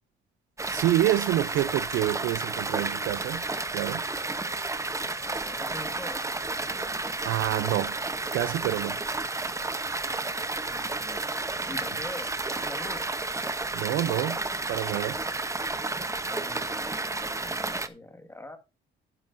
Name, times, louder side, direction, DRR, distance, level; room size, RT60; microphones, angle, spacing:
sound 1, 0.6-17.9, right 3 dB, 15° right, 0.8 m, -31 dB
voice 1, 0.7-3.5 3.7-4.1 7.2-8.0 8.3-9.0 13.7-14.4 14.7-15.2, right 14 dB, 85° right, 0.5 m, -27 dB
voice 2, 5.2-6.3 10.7-11.2 11.7-12.3 12.6-13.2 16.2-18.6, left 1 dB, 10° left, 1.7 m, -43 dB
12.0 x 9.6 x 2.6 m
cardioid pair, 90°, 20 cm